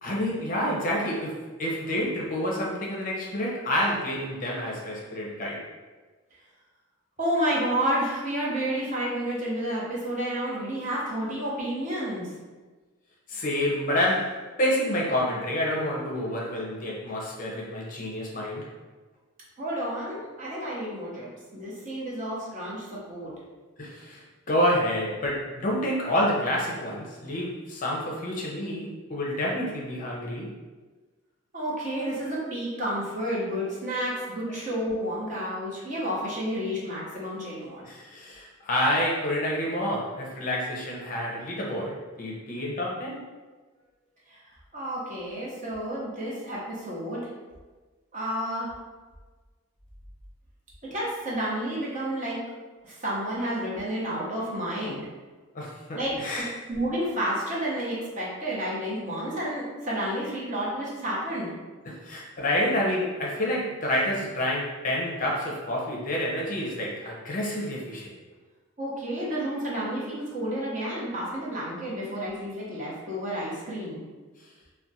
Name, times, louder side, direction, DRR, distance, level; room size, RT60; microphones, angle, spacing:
voice 1, 0.0-5.7 13.3-18.7 23.8-30.5 37.9-43.2 55.5-56.5 61.9-68.1, left 1 dB, 40° left, -3 dB, 0.5 m, -28 dB
voice 2, 7.2-12.3 19.6-23.3 31.5-37.9 44.3-44.4 44.7-47.3 48.1-48.7 50.8-52.4 52.8-55.1 55.9-56.2 56.7-61.5 68.8-74.0, equal, 40° right, -6 dB, 0.8 m, -30 dB
2.4 x 2.2 x 4.0 m, 1.3 s
head